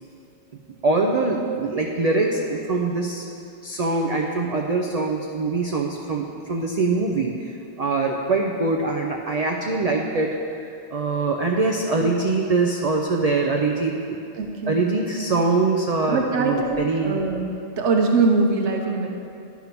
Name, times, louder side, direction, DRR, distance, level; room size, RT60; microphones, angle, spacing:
voice 1, 0.8-3.3 3.6-14.2 14.7-17.2, right 3 dB, 55° right, 1 dB, 0.4 m, -23 dB
voice 2, 14.4-14.8 16.1-19.2, right 3 dB, 75° right, 2 dB, 1.1 m, -22 dB
10.5 x 3.6 x 5.9 m, 2.6 s
omnidirectional pair, 1.2 m